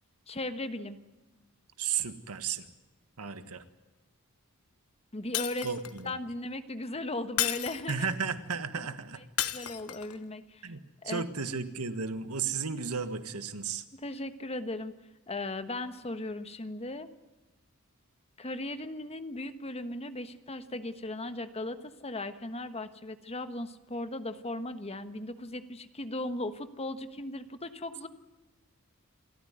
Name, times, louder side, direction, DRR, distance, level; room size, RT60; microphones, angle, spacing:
voice 1, 0.3-1.0 5.1-5.7 6.0-8.1 9.2-10.7 11.0-11.3 13.9-14.9 15.3-17.1 18.4-28.1, left 2 dB, 30° left, 10 dB, 1.3 m, -37 dB
voice 2, 1.8-2.7 3.2-3.6 5.6-6.1 7.9-9.2 10.6-13.8, right 6 dB, 80° right, 11 dB, 1.6 m, -34 dB
Shatter, 5.3-6.1 7.4-8.2 9.4-10.2, left 12 dB, 75° left, 1.3 m, -33 dB
28.5 x 14.0 x 9.5 m, 1.1 s
head